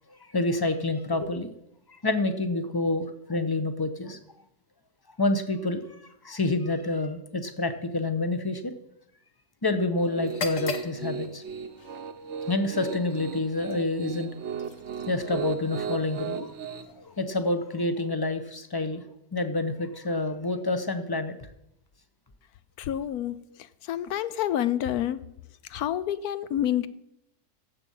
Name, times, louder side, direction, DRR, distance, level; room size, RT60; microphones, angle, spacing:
voice 1, 0.1-1.5 1.9-4.2 5.2-8.7 9.6-11.4 12.5-14.3 15.1-16.5 17.0-19.0 19.3-21.3, left 2 dB, 25° left, 10 dB, 0.5 m, -28 dB
Piano, 10.0-16.8, right 6 dB, 55° right, 1.0 m, -36 dB
Pouring milk, 10.2-18.0, left 5 dB, 60° left, 1.4 m, -42 dB
voice 2, 22.8-23.4 23.9-25.2 25.7-26.9, left 11 dB, 75° left, 15 dB, 1.1 m, -28 dB
16.5 x 7.3 x 5.5 m, 0.80 s
omnidirectional pair, 1.6 m